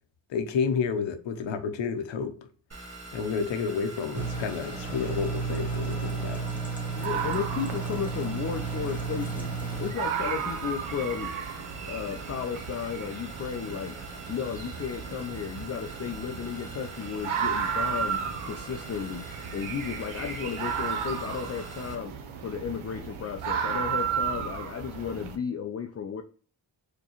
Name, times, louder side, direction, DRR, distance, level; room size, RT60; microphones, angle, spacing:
voice 1, 0.3-2.4 3.1-6.5, left 6 dB, 70° left, 0.8 m, -30 dB
sound 1, 2.7-21.9, right 2 dB, 30° right, 1.5 m, -44 dB
sound 2, 4.1-9.9, right 4 dB, 5° right, 1.7 m, -33 dB
voice 2, 7.0-11.3 11.9-14.0 14.3-22.1 22.4-26.2, left 7 dB, 35° left, 0.4 m, -34 dB
sound 3, 7.0-25.4, right 7 dB, 80° right, 0.7 m, -34 dB
4.6 x 2.2 x 2.9 m
supercardioid pair, 50°, 47 cm